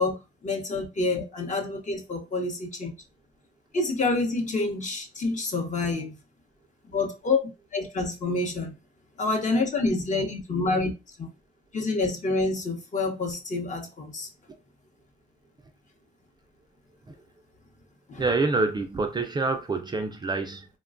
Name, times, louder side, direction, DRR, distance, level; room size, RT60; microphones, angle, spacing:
voice 1, 0.0-2.9 3.7-6.1 6.8-8.7 9.2-10.9 11.2-11.3 11.7-14.3 18.1-18.3, left 3 dB, 40° left, 0.8 m, -27 dB
voice 2, 18.2-20.7, right 3 dB, 20° right, 0.4 m, -26 dB
3.1 x 2.2 x 2.4 m
cardioid pair, 90°, 20 cm